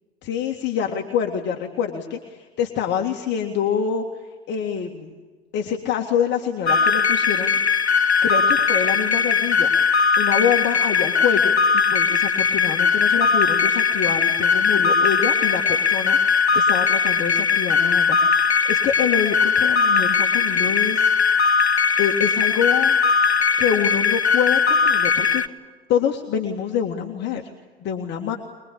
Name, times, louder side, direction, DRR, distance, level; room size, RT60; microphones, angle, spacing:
voice 1, 0.2-4.0 4.5-5.1 5.5-7.6 8.2-9.7 10.2-21.1 22.0-23.0 23.6-25.6 25.9-27.4 27.8-28.4, left 8 dB, 35° left, 2 dB, 2.1 m, -26 dB
sound 1, 6.7-25.5, left 5 dB, 85° left, 0.9 m, -19 dB
23.5 x 23.0 x 8.4 m, 1.4 s
figure-of-eight pair, 90°, 32 cm